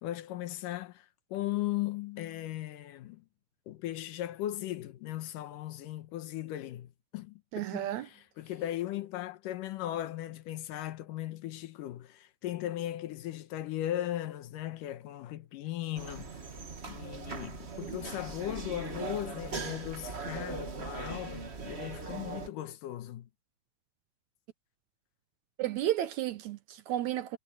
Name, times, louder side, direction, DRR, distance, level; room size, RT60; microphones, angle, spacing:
voice 1, 0.0-3.2 3.7-7.4 7.7-16.3 16.9-23.3, left 13 dB, 80° left, 2.6 m, -37 dB
voice 2, 7.5-8.1 25.6-27.4, right 13 dB, 70° right, 1.9 m, -32 dB
sound 1, 15.9-22.5, right 4 dB, 50° right, 0.7 m, -40 dB
omnidirectional pair, 3.8 m